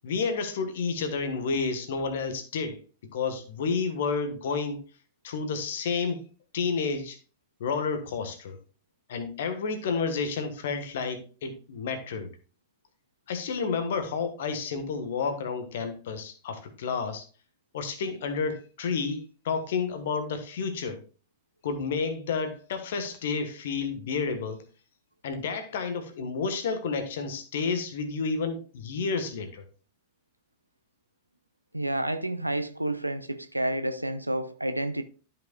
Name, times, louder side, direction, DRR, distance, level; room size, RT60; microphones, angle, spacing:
voice 1, 0.0-2.8 3.1-4.8 5.2-6.2 6.5-7.2 7.6-8.6 9.1-12.3 13.3-17.2 17.7-21.0 21.6-24.6 25.2-29.6, left 5 dB, 60° left, 1.4 m, -30 dB
voice 2, 31.7-35.0, right 1 dB, 85° right, 0.5 m, -30 dB
13.0 x 5.6 x 2.3 m
figure-of-eight pair, 90°, 0 cm